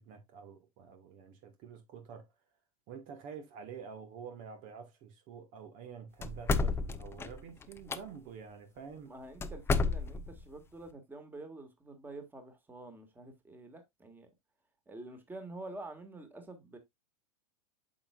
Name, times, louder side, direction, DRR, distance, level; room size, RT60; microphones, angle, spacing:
voice 1, 0.0-2.3 2.9-9.1, right 6 dB, 45° right, 1.6 m, -48 dB
sound 1, 6.2-8.0 9.4-10.4, left 3 dB, 15° left, 0.6 m, -31 dB
voice 2, 9.1-14.3 14.9-16.8, right 2 dB, 10° right, 1.9 m, -47 dB
8.5 x 6.3 x 2.4 m
hypercardioid pair, 115°, 19 cm